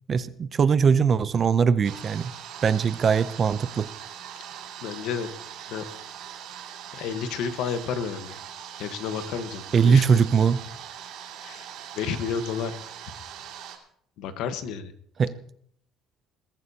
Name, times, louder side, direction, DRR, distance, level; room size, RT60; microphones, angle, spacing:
voice 1, 0.1-2.3 2.6-3.9 9.7-10.6 15.2-15.3, right 6 dB, 30° right, 15 dB, 0.5 m, -21 dB
sound 1, 1.8-13.8, right 9 dB, 65° right, 2.4 m, -41 dB
voice 2, 4.8-5.3 5.7-5.9 6.9-8.3 8.8-10.2 11.4-11.6 11.9-12.8 14.2-14.9, left 7 dB, 65° left, 10 dB, 1.2 m, -31 dB
21.5 x 14.0 x 2.8 m, 0.66 s
cardioid pair, 165°, 0 cm